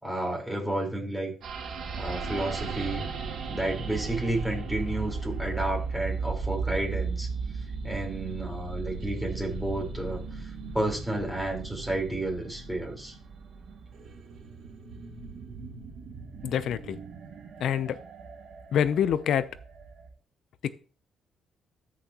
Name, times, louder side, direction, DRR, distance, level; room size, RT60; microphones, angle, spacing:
voice 1, 0.0-1.3 2.0-3.1 3.5-7.3 7.8-13.1, right 1 dB, ahead, 4.5 m, -31 dB
sound 1, 1.4-20.1, right 4 dB, 65° right, 2.1 m, -36 dB
voice 2, 16.4-17.0 17.6-18.0 18.7-19.5 20.6-20.7, left 9 dB, 70° left, 0.7 m, -26 dB
13.5 x 6.3 x 3.0 m
cardioid pair, 90°, 0 cm